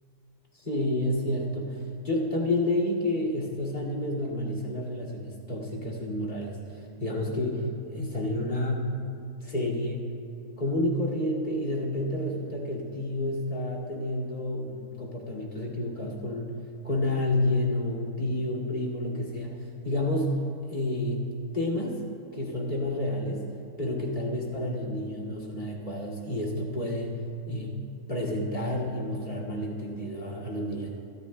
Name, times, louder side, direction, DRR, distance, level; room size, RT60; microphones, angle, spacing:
voice 1, 0.5-8.9 9.4-10.0 10.6-16.5 16.8-20.3 20.7-21.3 21.5-22.0 22.3-23.5 23.8-27.1 27.5-27.8 28.1-30.9, left 1 dB, 30° left, -2 dB, 2.4 m, -30 dB
25.5 x 13.5 x 2.2 m, 2.6 s
omnidirectional pair, 1.6 m